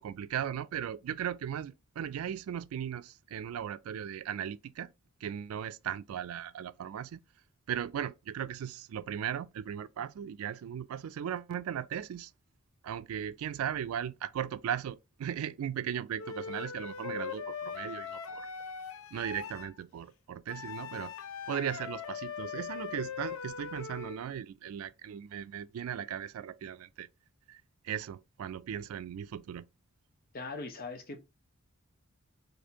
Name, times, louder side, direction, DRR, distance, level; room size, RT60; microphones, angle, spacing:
voice 1, 0.0-4.9 5.2-7.2 7.7-12.3 12.8-18.5 19.1-21.1 21.5-27.1 27.5-29.7, right 9 dB, 85° right, 0.3 m, -37 dB
Wind instrument woodwind instrument, 16.2-19.7 20.5-24.2, left 7 dB, 75° left, 0.4 m, -41 dB
voice 2, 30.3-31.2, left 3 dB, 45° left, 0.7 m, -40 dB
4.2 x 2.7 x 2.8 m
head